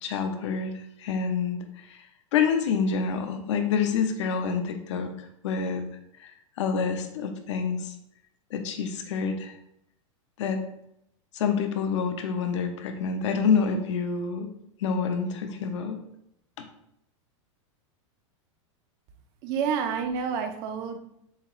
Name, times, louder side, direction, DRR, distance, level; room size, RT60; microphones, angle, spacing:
voice 1, 0.0-0.7 1.0-5.9 6.2-7.9 8.5-9.6 10.4-10.6 11.3-14.5 14.8-16.0 16.6-16.7, left 6 dB, 65° left, 5 dB, 0.7 m, -27 dB
voice 2, 19.4-21.0, right 6 dB, 25° right, 6 dB, 0.4 m, -29 dB
7.1 x 2.4 x 2.9 m, 0.76 s
supercardioid pair, 180°, 16 cm